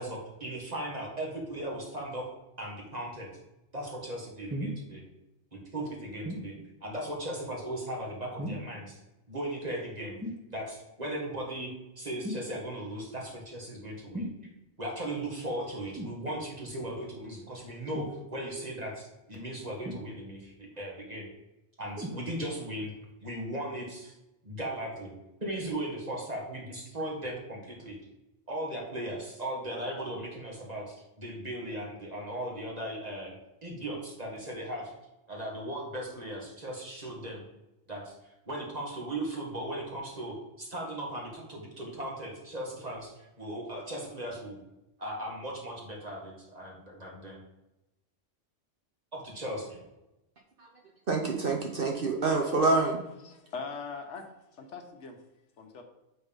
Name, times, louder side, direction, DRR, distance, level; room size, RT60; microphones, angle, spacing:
voice 1, 0.0-2.3 2.6-3.3 3.7-5.0 5.5-6.5 6.8-9.0 9.3-10.2 10.5-11.7 12.0-14.3 14.8-21.3 21.8-22.9 23.2-24.2 24.4-25.1 25.4-28.0 28.5-33.3 33.6-34.9 35.3-37.4 37.9-44.6 45.0-47.4 49.1-49.8, right 1 dB, 35° right, -2 dB, 2.0 m, -37 dB
sound 1, 4.5-4.8 6.2-6.5 8.4-8.8 10.2-10.5 12.2-12.5 14.1-14.4 16.0-16.2 17.9-18.2 19.8-20.4 22.0-22.2 23.0-23.1, equal, 15° right, 0.8 m, -36 dB
voice 2, 51.1-53.0, right 3 dB, 50° right, 2 dB, 1.0 m, -26 dB
voice 3, 53.2-54.3 54.5-55.2 55.6-55.8, left 5 dB, 70° left, 4 dB, 1.2 m, -41 dB
6.9 x 4.1 x 5.2 m, 0.94 s
omnidirectional pair, 1.3 m